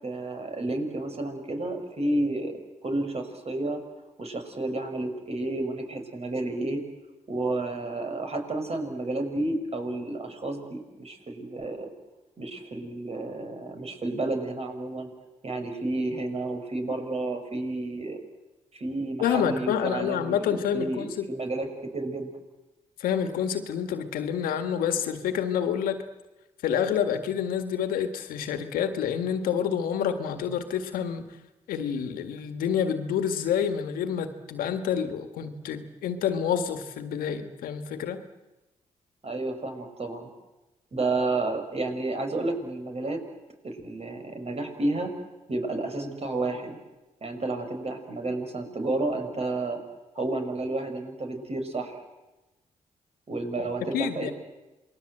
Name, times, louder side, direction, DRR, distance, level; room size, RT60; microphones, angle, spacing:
voice 1, 0.0-2.5 2.8-3.8 4.2-6.8 7.3-11.9 12.4-15.1 15.4-18.2 18.7-22.3 39.2-40.3 40.9-43.2 43.6-45.1 45.5-46.8 47.2-49.8 50.1-52.0 53.3-54.3, right 2 dB, 45° right, 5 dB, 5.7 m, -31 dB
voice 2, 19.2-21.3 23.0-26.0 26.6-31.3 31.7-38.2 53.9-54.3, left 8 dB, 90° left, 8 dB, 1.7 m, -28 dB
28.0 x 21.0 x 7.9 m, 1.1 s
supercardioid pair, 50°, 14 cm